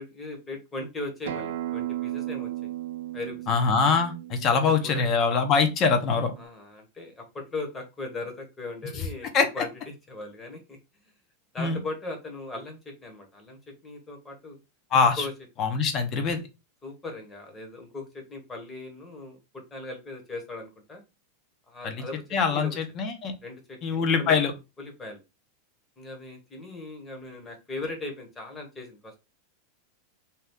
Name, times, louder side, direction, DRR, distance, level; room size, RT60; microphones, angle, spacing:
voice 1, 0.0-2.5 3.1-3.5 4.5-5.1 6.4-9.3 9.5-10.8 11.5-14.6 15.2-15.3 16.8-21.0 21.7-22.2 22.5-22.8 23.4-24.4 24.8-25.2 26.0-29.2, left 2 dB, 15° left, 2 dB, 1.0 m, -38 dB
Acoustic guitar, 1.3-6.5, right 14 dB, 80° right, 0.4 m, -36 dB
voice 2, 3.5-6.3 9.3-9.5 11.6-11.8 14.9-15.2 15.6-16.4 21.8-22.0 22.3-23.3 23.8-24.5, left 5 dB, 35° left, 6 dB, 0.7 m, -23 dB
2.8 x 2.3 x 3.5 m, 0.26 s
supercardioid pair, 145°, 0 cm